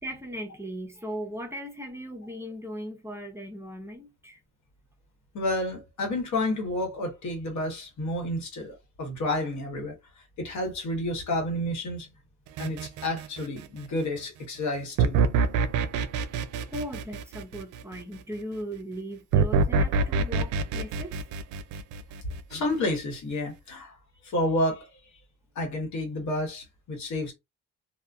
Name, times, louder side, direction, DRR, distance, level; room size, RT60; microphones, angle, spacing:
voice 1, 0.0-4.4 16.7-21.1, equal, 10° right, 0.7 m, -38 dB
voice 2, 5.3-10.0 10.4-12.1 12.6-15.2 22.5-23.9 24.2-24.9 25.5-27.3, left 1 dB, 70° left, 1.3 m, -30 dB
sound 1, 12.6-13.8 15.0-18.0 19.3-22.5, right 4 dB, 85° right, 0.5 m, -26 dB
2.6 x 2.4 x 2.3 m
cardioid pair, 90°, 30 cm